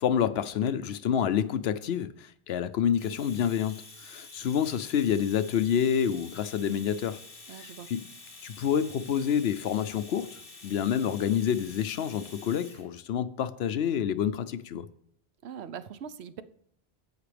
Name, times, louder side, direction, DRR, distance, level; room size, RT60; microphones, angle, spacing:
voice 1, 0.0-7.2 7.5-8.1 8.4-14.9, left 8 dB, 80° left, 0.9 m, -28 dB
Domestic sounds home sounds, 3.0-12.9, left 3 dB, 60° left, 1.9 m, -49 dB
voice 2, 7.5-7.9 15.4-16.4, right 8 dB, 85° right, 1.0 m, -41 dB
16.5 x 5.9 x 3.3 m
omnidirectional pair, 1.1 m